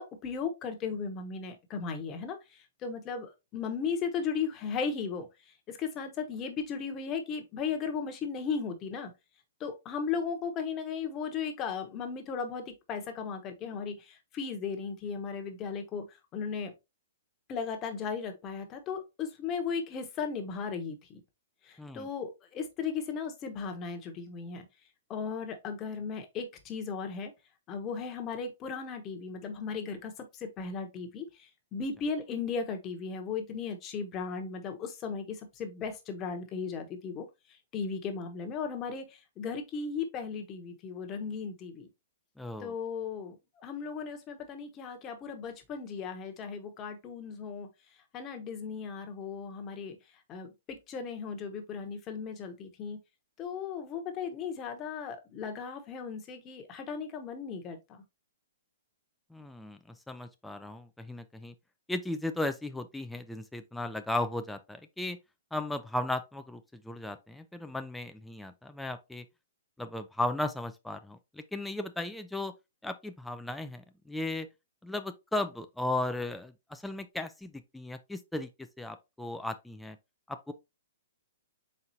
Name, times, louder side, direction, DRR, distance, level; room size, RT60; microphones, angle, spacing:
voice 1, 0.0-9.1 9.6-16.7 17.5-21.2 21.6-24.7 25.1-27.3 27.7-41.9 42.6-47.7 48.1-50.0 50.3-53.0 53.4-58.0, left 5 dB, 25° left, 0.9 m, -36 dB
voice 2, 21.8-22.1 42.4-42.7 59.3-59.8 60.1-61.5 61.9-65.2 65.5-69.2 69.8-72.5 72.8-74.5 74.8-78.5 78.8-80.0 80.3-80.5, left 2 dB, 5° left, 0.3 m, -36 dB
4.4 x 3.7 x 2.7 m
hypercardioid pair, 145°, 0 cm